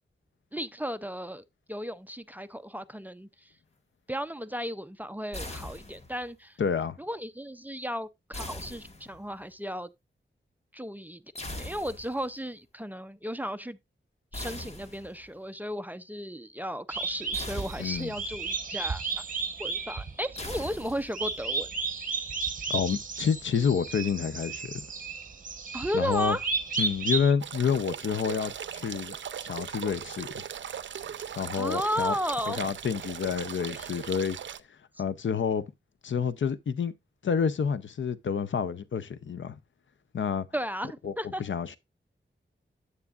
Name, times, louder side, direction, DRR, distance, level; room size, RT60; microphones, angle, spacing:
voice 1, 0.5-3.5 4.1-6.6 7.0-9.9 10.7-11.2 11.6-13.8 14.3-19.0 19.6-21.7 25.7-26.4 31.5-32.6 40.5-41.4, equal, 10° right, 0.4 m, -34 dB
sound 1, 5.3-6.3 8.3-9.4 11.3-12.3 14.3-15.3 17.3-18.3 20.4-21.4, left 1 dB, 35° left, 1.4 m, -41 dB
voice 2, 6.6-7.0 17.8-18.1 22.7-24.9 25.9-26.4 26.8-29.1 29.4-30.3 31.4-32.1 32.5-34.4 35.0-35.6 36.0-36.9 37.2-39.6 40.1-40.5 41.0-41.1 41.4-41.8, left 6 dB, 80° left, 0.6 m, -28 dB
sound 2, 16.9-27.3, right 4 dB, 45° right, 1.0 m, -33 dB
sound 3, 27.4-34.6, right 8 dB, 75° right, 0.5 m, -39 dB
9.6 x 8.2 x 2.4 m
wide cardioid pair, 125°, 19 cm